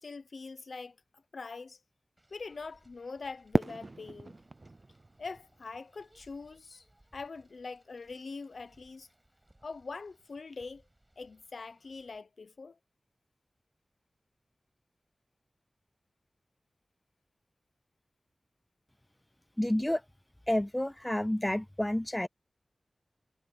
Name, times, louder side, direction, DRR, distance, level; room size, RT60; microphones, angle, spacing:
voice 1, 0.0-1.8 2.3-4.4 5.2-6.8 7.1-9.1 9.6-10.8 11.2-12.8, left 4 dB, 80° left, 0.8 m, -43 dB
sound 1, 2.2-12.2, right 1 dB, 15° right, 5.9 m, -67 dB
Fireworks, 3.5-6.6, right 2 dB, 45° right, 0.6 m, -36 dB
voice 2, 19.6-20.0 20.5-22.3, left 1 dB, 15° left, 0.5 m, -29 dB
wide cardioid pair, 75°, 0 cm